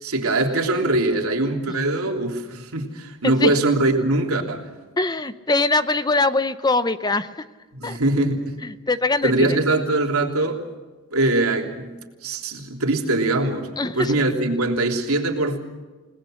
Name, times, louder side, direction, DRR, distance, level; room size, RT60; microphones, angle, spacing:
voice 1, 0.0-4.7 7.7-8.5 9.2-10.6 11.1-11.9 12.2-13.7 13.9-15.6, right 2 dB, 80° right, 2 dB, 3.3 m, -22 dB
voice 2, 5.0-7.4 7.8-8.0 8.6-9.6 13.8-14.1, left 3 dB, 20° left, 13 dB, 0.6 m, -22 dB
29.5 x 19.0 x 6.5 m, 1.3 s
head